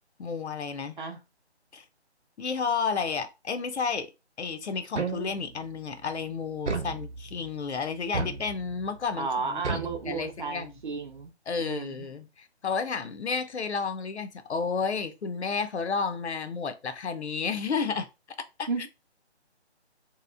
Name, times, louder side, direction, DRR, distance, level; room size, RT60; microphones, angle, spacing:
voice 1, 0.2-1.0 1.7-1.8 2.4-4.1 4.4-9.8 10.1-10.7 11.5-18.1 18.6-18.7, left 5 dB, 75° left, 0.6 m, -31 dB
sound 1, 5.0-5.6 6.7-7.5 8.1-8.9 9.6-10.7, right 4 dB, 85° right, 0.8 m, -34 dB
voice 2, 9.2-11.3 11.6-12.1 18.7-18.9, right 4 dB, 45° right, 0.7 m, -33 dB
3.0 x 2.9 x 2.4 m
figure-of-eight pair, 165°, 34 cm